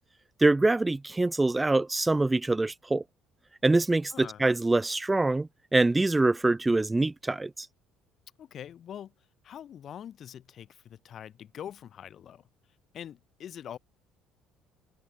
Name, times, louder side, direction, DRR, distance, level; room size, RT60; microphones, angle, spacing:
voice 1, 0.4-3.0 3.6-7.5, right 2 dB, 15° right, 0.3 m, -24 dB
voice 2, 4.1-4.4 8.4-9.1 9.4-12.5 12.9-13.8, left 9 dB, 55° left, 1.2 m, -43 dB
hypercardioid pair, 60°, 0 cm